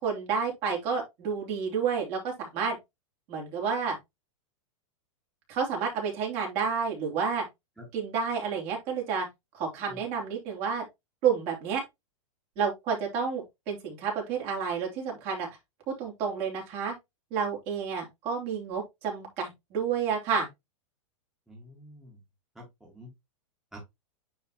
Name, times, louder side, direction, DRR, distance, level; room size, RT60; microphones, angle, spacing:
voice 1, 0.0-2.8 3.3-4.0 5.5-7.4 7.9-9.3 9.5-10.8 11.2-11.8 12.6-15.5 16.0-16.9 17.3-20.5, right 6 dB, 40° right, 3.1 m, -30 dB
voice 2, 21.5-22.2 22.5-23.1 23.7-23.8, equal, ahead, 1.8 m, -48 dB
9.3 x 3.9 x 2.9 m
hypercardioid pair, 145°, 17 cm